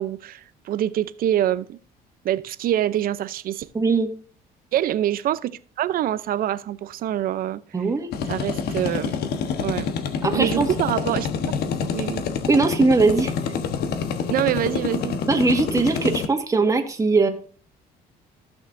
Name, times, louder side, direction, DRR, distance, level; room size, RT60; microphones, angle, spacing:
voice 1, 0.0-1.8 2.2-3.7 4.7-7.6 8.3-9.2 9.6-9.9 10.3-11.3 11.9-12.2 14.3-15.1, right 12 dB, 60° right, 0.7 m, -25 dB
voice 2, 3.7-4.1 7.7-8.1 10.2-10.7 12.5-13.3 15.3-17.3, right 3 dB, 20° right, 1.8 m, -20 dB
sound 1, 8.1-16.3, left 6 dB, 75° left, 1.2 m, -27 dB
15.0 x 6.4 x 2.6 m
cardioid pair, 110°, 17 cm